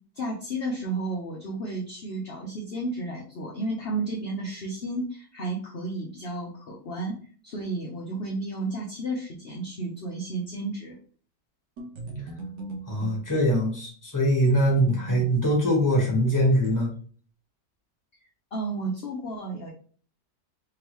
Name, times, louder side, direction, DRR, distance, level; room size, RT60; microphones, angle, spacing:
voice 1, 0.1-7.1 7.4-11.0 18.5-19.7, right 2 dB, 50° left, -1 dB, 0.8 m, -32 dB
sound 1, 11.8-13.2 14.5-16.8, right 2 dB, 75° right, 1.6 m, -38 dB
voice 2, 12.9-16.9, equal, 10° left, -3 dB, 1.4 m, -22 dB
3.6 x 3.5 x 3.0 m, 0.43 s
omnidirectional pair, 1.8 m